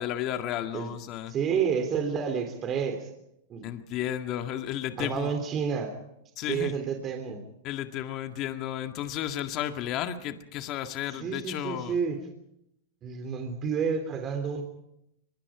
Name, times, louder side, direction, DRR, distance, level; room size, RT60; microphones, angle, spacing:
voice 1, 0.0-1.3 3.6-5.3 6.4-6.8 7.6-12.0, left 11 dB, 45° left, 7 dB, 2.0 m, -33 dB
voice 2, 1.3-3.1 3.5-3.7 5.0-5.9 6.4-7.4 11.1-12.2 13.0-14.6, right 6 dB, 30° right, 5 dB, 3.3 m, -30 dB
23.5 x 22.0 x 5.0 m, 0.80 s
hypercardioid pair, 120°, 0 cm